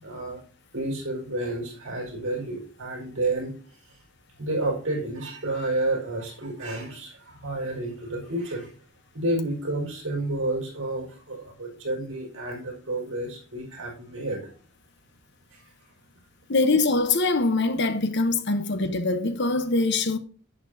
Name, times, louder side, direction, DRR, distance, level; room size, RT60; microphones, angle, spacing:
voice 1, 0.0-0.4 0.7-3.5 3.8-4.0 4.4-8.7 9.1-14.5 15.5-15.6, right 2 dB, 55° right, 5.0 m, -30 dB
voice 2, 16.5-20.2, left 3 dB, 50° left, 0.9 m, -23 dB
11.0 x 8.4 x 2.7 m
head